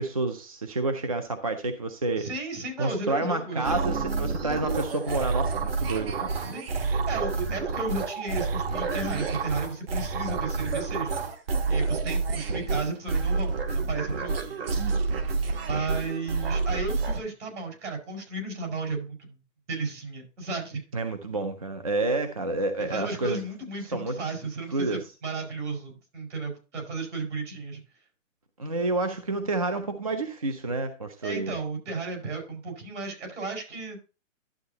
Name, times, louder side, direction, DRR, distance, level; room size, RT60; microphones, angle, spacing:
voice 1, 0.0-2.3 2.8-6.3 20.9-23.4 23.8-24.2 24.7-25.1 28.6-31.5, right 2 dB, 30° right, 8 dB, 0.4 m, -29 dB
voice 2, 2.2-3.9 6.4-11.3 11.7-14.4 15.6-19.4 19.7-20.8 22.8-27.8 31.2-34.0, right 3 dB, 65° right, 3 dB, 5.1 m, -34 dB
sound 1, 3.6-17.2, right 4 dB, 50° right, 1.2 m, -29 dB
11.5 x 7.7 x 2.7 m, 0.32 s
hypercardioid pair, 175°, 39 cm